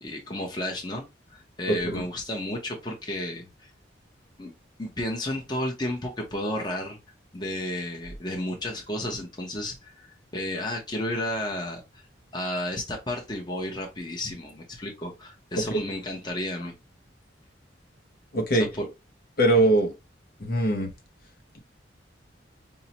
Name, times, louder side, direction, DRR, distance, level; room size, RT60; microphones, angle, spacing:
voice 1, 0.0-3.5 4.4-4.5 4.8-7.0 7.3-11.8 12.3-16.7 18.5-18.9, left 1 dB, 25° left, 0.8 m, -32 dB
voice 2, 1.7-2.0 15.7-15.8 18.3-18.7 19.4-19.9 20.4-20.9, right 1 dB, 55° left, 0.9 m, -22 dB
5.4 x 2.1 x 2.8 m
head